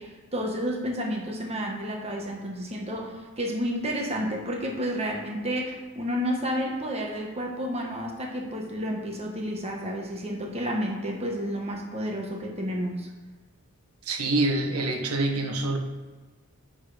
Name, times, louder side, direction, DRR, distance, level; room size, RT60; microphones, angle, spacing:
voice 1, 0.0-13.1, equal, 30° right, 0 dB, 1.3 m, -31 dB
voice 2, 14.0-15.8, right 2 dB, 85° right, 2 dB, 1.3 m, -26 dB
10.5 x 4.2 x 5.0 m, 1.3 s
head